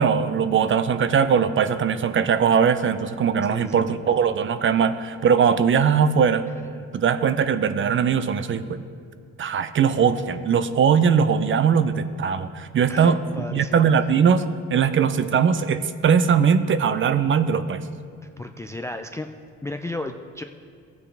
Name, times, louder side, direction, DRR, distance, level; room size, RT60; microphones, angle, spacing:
voice 1, 0.0-6.5 6.9-8.8 9.4-13.2 13.5-14.5 14.7-17.8, right 7 dB, 40° right, 12 dB, 0.5 m, -20 dB
voice 2, 3.5-3.9 12.9-13.8 18.4-19.3 19.6-20.4, left 2 dB, 10° left, 6 dB, 0.3 m, -33 dB
14.5 x 8.1 x 3.4 m, 2.3 s
cardioid pair, 90°, 30 cm